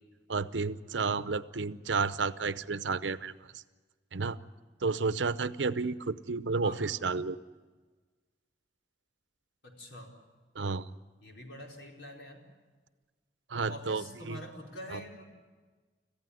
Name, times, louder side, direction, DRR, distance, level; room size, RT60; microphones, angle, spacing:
voice 1, 0.3-3.3 4.1-4.4 4.8-7.4 10.6-10.8 13.5-14.4 14.9-15.0, right 4 dB, 90° right, 14 dB, 0.8 m, -31 dB
voice 2, 9.6-10.1 11.2-12.4 13.6-15.3, equal, 80° left, 0 dB, 4.7 m, -45 dB
26.0 x 15.5 x 9.8 m, 1.4 s
head